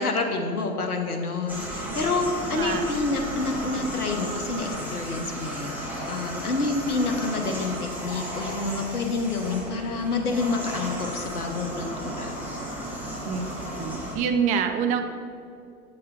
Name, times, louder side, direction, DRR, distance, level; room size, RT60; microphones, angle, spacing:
voice 1, 0.0-12.3, left 3 dB, 90° left, 4 dB, 0.9 m, -28 dB
sound 1, 1.5-14.1, equal, 5° right, 1.6 m, -34 dB
voice 2, 2.5-2.8 13.3-15.0, right 7 dB, 20° right, 6 dB, 0.4 m, -26 dB
7.9 x 6.7 x 3.3 m, 2.4 s
figure-of-eight pair, 95°, 44 cm